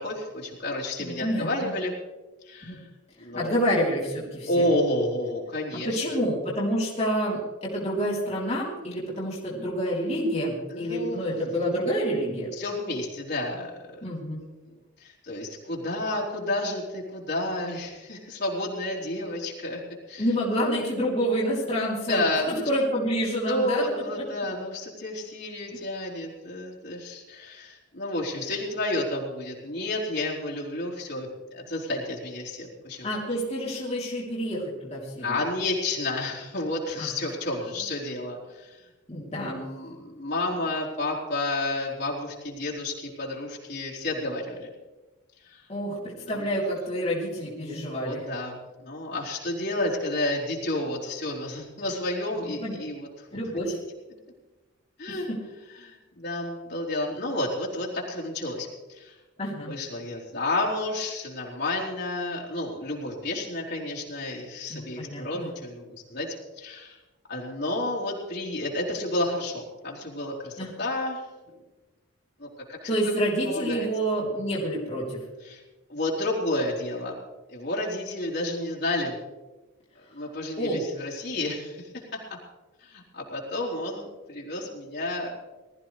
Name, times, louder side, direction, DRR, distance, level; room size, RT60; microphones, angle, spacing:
voice 1, 0.0-2.0 2.4-2.9 3.2-3.6 4.5-6.0 10.7-11.4 12.6-14.0 14.7-19.8 20.1-20.3 22.1-22.7 23.5-33.1 35.2-38.8 39.4-44.7 45.4-45.7 46.1-46.5 48.0-53.3 55.0-55.3 55.7-59.2 59.6-67.0 67.3-71.2 72.4-72.9 73.5-73.9 75.4-75.6 75.9-77.1 77.5-79.1 80.1-82.0 82.8-85.4, left 1 dB, 55° left, -4 dB, 3.8 m, -31 dB
voice 2, 1.0-1.7 2.6-2.8 3.3-4.5 5.8-12.5 14.0-14.4 20.2-22.2 22.5-23.8 33.0-35.4 37.0-37.1 39.1-39.6 45.7-48.2 52.3-52.7 53.3-53.8 55.3-55.4 59.4-59.7 64.7-65.5 70.6-70.7 72.9-75.2 80.6-80.8, equal, 30° left, -6 dB, 3.3 m, -28 dB
20.5 x 14.5 x 3.3 m, 1.2 s
head